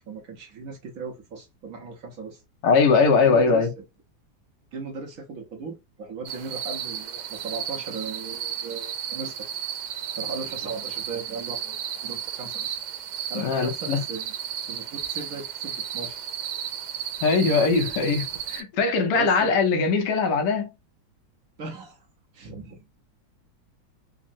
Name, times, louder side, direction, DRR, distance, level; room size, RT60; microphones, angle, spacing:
voice 1, 0.0-2.4 3.1-3.7 4.7-9.5 10.2-12.8 13.3-14.3 14.6-16.2 19.1-19.5 21.6-22.1 22.3-23.0, right 4 dB, 60° right, 0.9 m, -37 dB
voice 2, 2.6-3.7 13.3-14.0 17.2-20.7, left 4 dB, 65° left, 1.2 m, -21 dB
sound 1, 6.3-18.6, right 9 dB, 85° right, 1.4 m, -33 dB
3.6 x 2.0 x 2.4 m
omnidirectional pair, 2.1 m